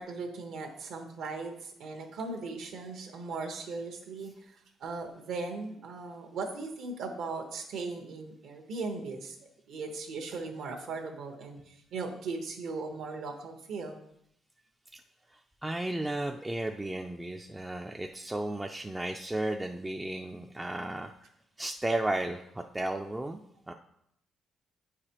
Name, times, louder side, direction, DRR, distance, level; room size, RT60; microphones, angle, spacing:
voice 1, 0.0-9.4 9.7-14.0, right 3 dB, 75° right, 3 dB, 1.0 m, -38 dB
voice 2, 15.3-21.3 21.6-23.4 23.7-23.8, right 1 dB, 10° right, 3 dB, 0.3 m, -34 dB
8.1 x 4.9 x 2.9 m, 0.75 s
cardioid pair, 125°, 0 cm